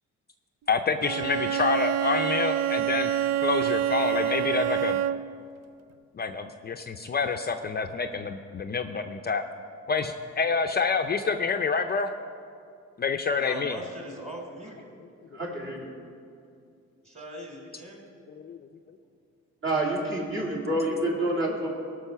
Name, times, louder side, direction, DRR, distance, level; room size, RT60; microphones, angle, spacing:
voice 1, 0.7-3.1 3.4-5.0 6.1-9.4 9.9-12.1 13.0-13.8 18.4-18.6, left 5 dB, 35° left, 6 dB, 0.5 m, -27 dB
Bowed string instrument, 1.0-5.4, right 11 dB, 60° right, 0.4 m, -27 dB
voice 2, 13.4-14.8 17.0-18.0, equal, 20° right, 0 dB, 3.1 m, -41 dB
voice 3, 15.3-15.8 19.6-21.7, right 1 dB, 40° right, -2 dB, 3.0 m, -28 dB
18.0 x 6.2 x 5.7 m, 2.4 s
cardioid pair, 90°, 30 cm